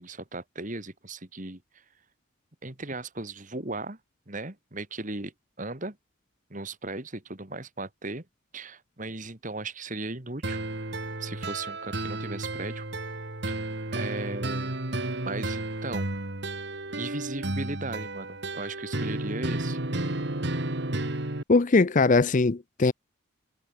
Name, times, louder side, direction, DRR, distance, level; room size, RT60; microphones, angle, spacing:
voice 1, 0.0-1.8 2.6-4.0 4.3-6.0 6.5-8.3 8.5-10.6 11.2-12.9 13.5-13.6 13.9-14.8 15.2-16.1 16.9-19.8, right 2 dB, 40° right, 2.2 m, -37 dB
sound 1, 10.4-21.4, right 2 dB, 55° right, 2.2 m, -32 dB
voice 2, 21.5-22.9, left 3 dB, 40° left, 0.5 m, -21 dB
head